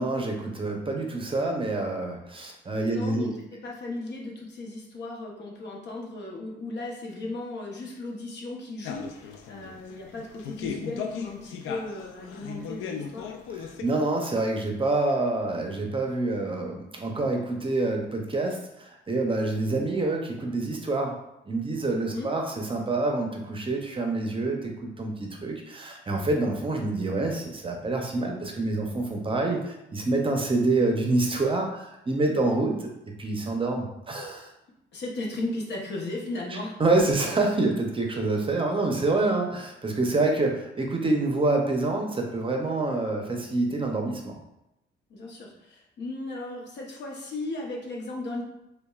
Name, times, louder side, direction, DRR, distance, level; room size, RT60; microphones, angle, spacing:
voice 1, 0.0-3.3 13.8-21.2 21.5-32.9 33.2-34.5 36.5-44.4, right 2 dB, 25° right, 2 dB, 0.6 m, -27 dB
voice 2, 2.9-13.3 22.1-22.3 32.3-32.6 34.9-36.8 39.2-39.4 45.1-48.4, left 2 dB, 60° left, -1 dB, 0.9 m, -36 dB
sound 1, 8.8-13.8, left 7 dB, 90° left, 0.4 m, -37 dB
5.1 x 2.2 x 2.3 m, 0.86 s
cardioid pair, 90°, 20 cm